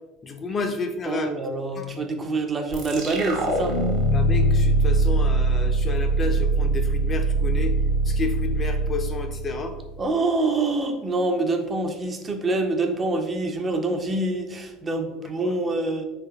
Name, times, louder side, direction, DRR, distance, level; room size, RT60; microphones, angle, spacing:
voice 1, 0.2-1.3 1.8-2.0 4.1-7.7 8.0-9.8 15.2-15.6, left 4 dB, 35° left, 5 dB, 0.4 m, -31 dB
voice 2, 1.1-3.8 10.0-16.0, right 2 dB, 30° right, 4 dB, 0.4 m, -26 dB
sound 1, 2.7-10.0, right 2 dB, 65° right, 0.7 m, -22 dB
3.3 x 3.3 x 2.2 m, 1.1 s
hypercardioid pair, 80°, 0 cm